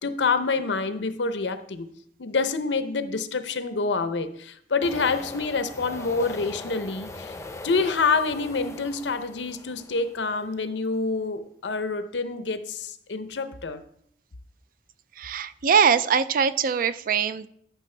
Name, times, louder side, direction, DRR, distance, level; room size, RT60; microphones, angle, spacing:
voice 1, 0.0-1.9 2.2-7.4 7.6-13.8, left 4 dB, 85° left, 0.7 m, -27 dB
sound 1, 4.8-10.6, left 2 dB, 15° left, 0.6 m, -41 dB
voice 2, 15.2-17.5, right 6 dB, 50° right, 0.4 m, -22 dB
12.5 x 6.1 x 3.3 m
head